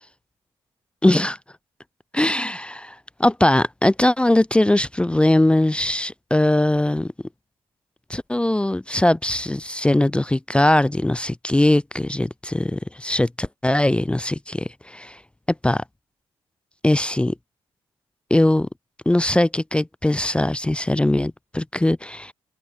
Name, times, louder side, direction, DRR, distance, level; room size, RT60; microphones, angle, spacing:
voice 1, 1.0-1.4 2.1-7.1 8.1-15.2 15.6-15.8 16.8-17.3 18.3-18.7 19.1-22.3, left 1 dB, 10° left, 0.5 m, -20 dB
open air
supercardioid pair, 60°, 11 cm